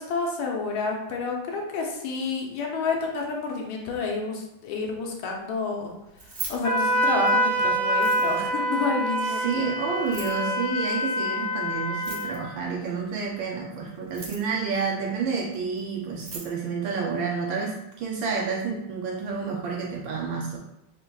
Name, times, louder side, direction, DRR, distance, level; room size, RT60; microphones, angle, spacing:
voice 1, 0.0-5.9 6.5-9.7, left 4 dB, 75° left, 0 dB, 1.5 m, -29 dB
Keys jangling, 6.1-7.5 7.9-8.6 9.9-10.4 11.9-12.6 13.9-14.6 15.8-15.9 16.1-16.5, right 3 dB, 50° right, 0.7 m, -39 dB
Wind instrument woodwind instrument, 6.6-12.4, equal, 50° left, 0.7 m, -26 dB
voice 2, 9.2-20.6, right 5 dB, 75° right, -1 dB, 1.1 m, -29 dB
4.6 x 3.4 x 2.3 m, 0.87 s
omnidirectional pair, 2.4 m